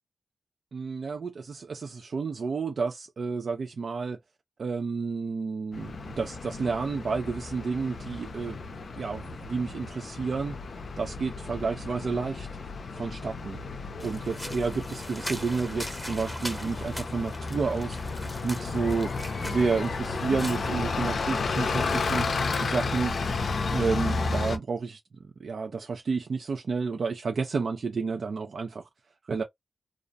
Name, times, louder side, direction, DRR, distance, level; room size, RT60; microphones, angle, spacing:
voice 1, 0.7-4.2 4.6-8.6 9.0-12.5 12.9-13.6 14.0-19.1 19.4-22.3 22.6-23.1 23.7-25.0 25.4-28.9 29.3-29.4, right 4 dB, 65° right, 0.4 m, -30 dB
Bus, 5.7-24.6, left 4 dB, 65° left, 0.4 m, -32 dB
sound 1, 14.0-20.7, equal, 5° left, 0.7 m, -41 dB
2.4 x 2.1 x 2.5 m
wide cardioid pair, 125°, 0 cm